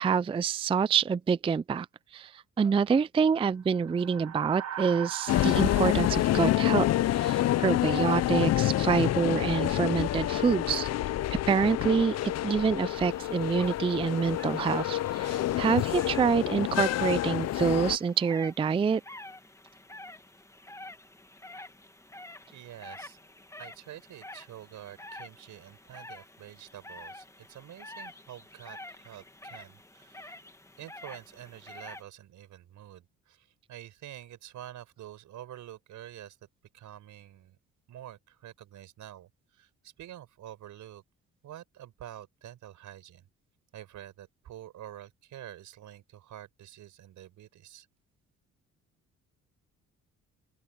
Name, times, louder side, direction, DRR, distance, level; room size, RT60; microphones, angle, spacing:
voice 1, 0.0-1.9 2.1-6.9 7.1-10.9 11.5-19.0, right 6 dB, 20° right, 0.3 m, -27 dB
sound 1, 3.7-8.2, right 10 dB, 60° right, 1.4 m, -42 dB
sound 2, 5.3-18.0, left 14 dB, 60° left, 0.5 m, -28 dB
sound 3, 13.0-32.0, left 1 dB, 10° left, 2.2 m, -48 dB
voice 2, 22.5-23.2 23.6-30.4 30.8-36.4 36.7-37.6 37.9-41.0 41.4-43.3 43.7-47.9, right 12 dB, 75° right, 5.2 m, -47 dB
open air
cardioid pair, 90°, 30 cm